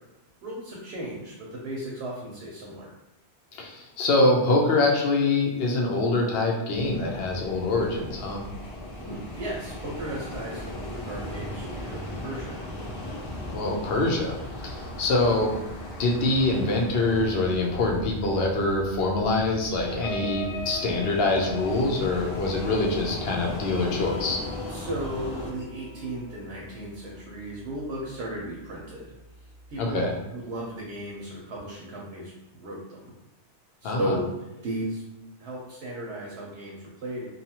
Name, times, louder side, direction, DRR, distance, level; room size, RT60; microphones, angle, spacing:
voice 1, 0.4-2.9 9.0-12.6 15.1-15.2 24.7-29.1 29.7-30.0 30.3-33.1 33.8-34.3 34.6-35.0 35.4-37.3, right 1 dB, 70° right, -3 dB, 0.9 m, -35 dB
voice 2, 3.5-8.4 13.5-14.4 14.6-15.5 16.0-24.4 29.8-30.1 33.8-34.1, left 2 dB, 65° left, 0 dB, 0.8 m, -24 dB
sound 1, 6.7-25.5, left 1 dB, 45° left, 0.4 m, -37 dB
sound 2, 19.7-28.6 29.1-29.3 29.6-29.9, left 3 dB, 90° left, 1.3 m, -41 dB
2.7 x 2.3 x 2.8 m, 0.97 s
omnidirectional pair, 1.2 m